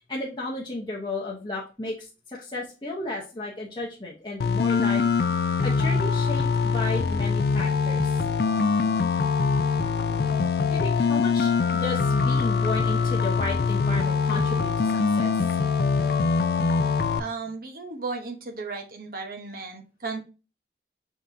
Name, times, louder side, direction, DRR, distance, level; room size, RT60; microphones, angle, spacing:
voice 1, 0.1-5.0 5.6-8.1 9.8-9.9 10.7-15.3, left 2 dB, 25° left, -4 dB, 0.8 m, -33 dB
sound 1, 4.4-17.2, left 5 dB, 60° left, 0.3 m, -23 dB
voice 2, 17.2-20.2, right 4 dB, 55° right, 3 dB, 0.9 m, -35 dB
5.3 x 3.6 x 2.7 m, 0.32 s
head